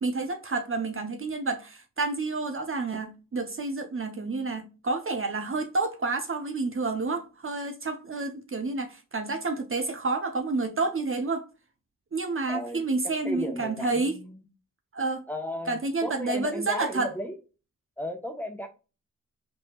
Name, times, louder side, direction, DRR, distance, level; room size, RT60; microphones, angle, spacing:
voice 1, 0.0-11.5 12.1-14.1 14.9-15.2 15.7-17.1, right 3 dB, 40° right, 0.8 m, -29 dB
voice 2, 12.5-14.4 15.3-17.4 18.0-18.7, left 1 dB, 5° left, 1.2 m, -35 dB
5.4 x 3.5 x 2.4 m
cardioid pair, 65°, 32 cm